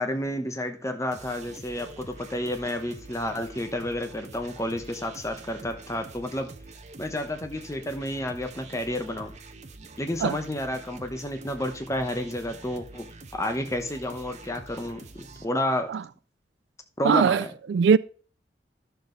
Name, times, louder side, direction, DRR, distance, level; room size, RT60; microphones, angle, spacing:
voice 1, 0.0-6.5 7.0-9.3 10.0-13.1 13.3-15.9 17.0-17.5, left 1 dB, 15° left, 1.0 m, -30 dB
sound 1, 1.1-15.4, right 3 dB, 40° right, 0.9 m, -46 dB
voice 2, 17.0-17.4 17.7-18.0, right 6 dB, 80° right, 0.3 m, -20 dB
11.5 x 6.9 x 3.9 m
head